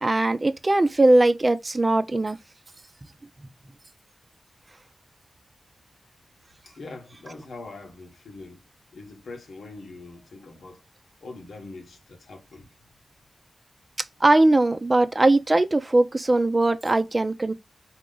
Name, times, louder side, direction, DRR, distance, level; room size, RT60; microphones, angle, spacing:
voice 1, 0.0-2.4 14.2-17.5, right 2 dB, 30° right, 0.6 m, -20 dB
voice 2, 6.6-8.6 8.9-10.8 11.2-12.7, left 3 dB, 90° left, 1.3 m, -42 dB
4.6 x 3.0 x 3.8 m
wide cardioid pair, 80°, 0 cm